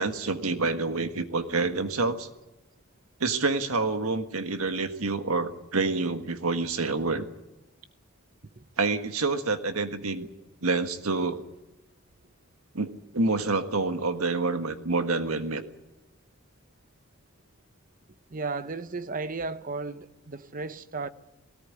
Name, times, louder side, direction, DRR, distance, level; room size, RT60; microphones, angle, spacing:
voice 1, 0.0-2.3 3.2-7.2 8.8-10.3 10.6-11.4 12.7-15.6, right 3 dB, 90° right, 1.6 m, -27 dB
voice 2, 18.3-21.1, right 3 dB, 40° right, 0.8 m, -34 dB
19.5 x 18.0 x 9.7 m
head